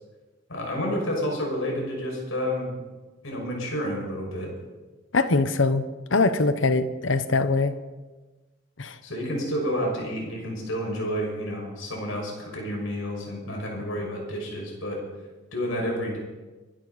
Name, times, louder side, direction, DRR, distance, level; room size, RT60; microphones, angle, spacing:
voice 1, 0.5-2.7 3.2-4.5 9.0-15.0 15.5-16.2, equal, 85° left, 0 dB, 6.0 m, -30 dB
voice 2, 5.1-5.8 6.1-7.7 8.8-9.0, left 3 dB, 70° left, 11 dB, 1.0 m, -22 dB
25.0 x 11.5 x 4.2 m, 1.2 s
head